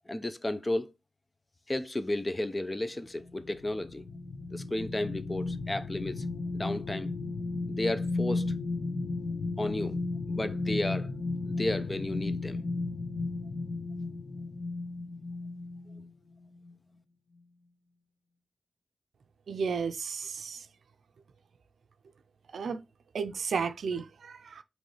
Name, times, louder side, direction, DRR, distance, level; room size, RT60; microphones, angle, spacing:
voice 1, 0.1-0.9 1.7-4.0 4.5-6.2 6.5-7.1 7.7-8.5 9.6-10.0 10.3-11.1 11.4-12.6, left 1 dB, 20° left, 0.5 m, -33 dB
sound 1, 3.2-16.1 16.5-16.7, left 3 dB, 75° left, 0.6 m, -34 dB
voice 2, 19.5-20.6 22.5-22.8 23.1-24.6, right 5 dB, 80° right, 0.4 m, -33 dB
5.3 x 3.1 x 3.2 m
wide cardioid pair, 85°, 0 cm